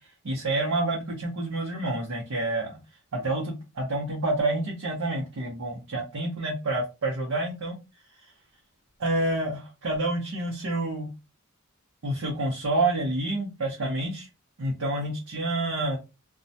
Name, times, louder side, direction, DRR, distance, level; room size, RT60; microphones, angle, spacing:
voice 1, 0.2-2.8 3.1-7.8 9.0-11.1 12.0-14.3 14.6-16.0, right 2 dB, 80° right, -2 dB, 0.7 m, -28 dB
2.2 x 2.1 x 2.6 m, 0.27 s
head